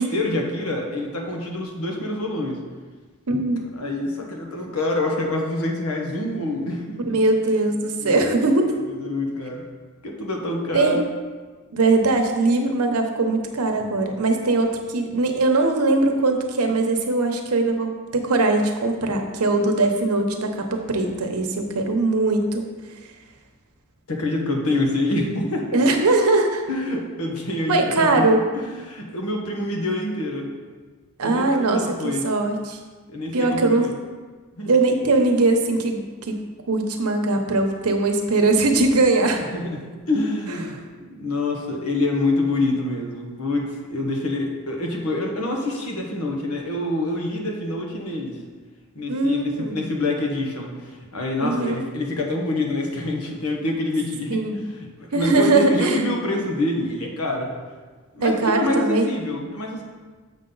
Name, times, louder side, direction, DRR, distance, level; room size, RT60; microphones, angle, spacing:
voice 1, 0.0-2.6 3.8-7.0 8.0-8.2 8.9-9.6 10.0-11.0 24.1-25.8 26.7-28.2 28.6-30.5 31.2-32.2 33.1-33.9 34.6-34.7 39.5-48.4 48.9-57.6 58.1-59.8, left 2 dB, 80° left, 1 dB, 1.2 m, -26 dB
voice 2, 3.3-3.7 7.1-8.7 10.7-11.0 11.7-22.7 25.7-26.6 27.7-28.4 31.2-32.8 33.3-33.9 34.7-36.3 36.7-39.4 40.5-40.6 49.1-49.8 51.4-51.8 54.3-54.5 55.1-56.0 58.2-59.1, right 2 dB, 90° right, 4 dB, 0.9 m, -21 dB
7.3 x 5.6 x 3.9 m, 1.4 s
head